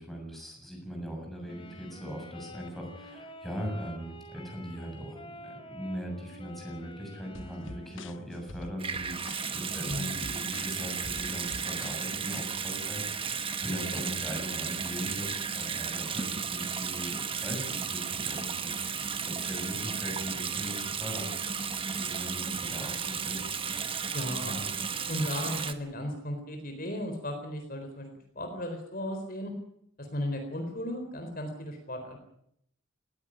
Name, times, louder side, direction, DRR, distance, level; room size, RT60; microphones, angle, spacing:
voice 1, 0.0-15.3 15.5-23.4 24.4-24.7, equal, ahead, 1 dB, 7.1 m, -40 dB
Wind instrument woodwind instrument, 1.4-8.6, left 1 dB, 25° left, 3.0 m, -48 dB
sound 1, 7.3-12.4, left 3 dB, 70° left, 1.0 m, -46 dB
Water tap faucet / Sink (filling or washing) / Bathtub (filling or washing), 8.8-25.7, right 6 dB, 25° right, 1.3 m, -34 dB
voice 2, 9.9-10.2 24.1-24.6 25.1-28.1 28.4-29.5 30.0-32.2, left 1 dB, 45° left, 5 dB, 4.1 m, -35 dB
19.5 x 16.0 x 10.0 m, 0.73 s
head